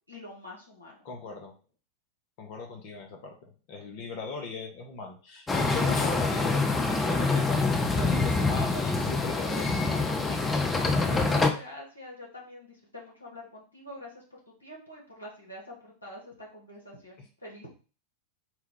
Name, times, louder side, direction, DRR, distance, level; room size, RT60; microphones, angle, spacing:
voice 1, 0.1-1.0 7.3-7.4 10.8-17.7, left 1 dB, 80° left, -4 dB, 1.4 m, -45 dB
voice 2, 1.0-1.5 2.4-10.6, left 4 dB, 45° left, 3 dB, 0.7 m, -39 dB
sound 1, 5.5-11.5, left 3 dB, 15° left, 0.5 m, -26 dB
4.4 x 2.3 x 3.7 m, 0.37 s
figure-of-eight pair, 90°, 0 cm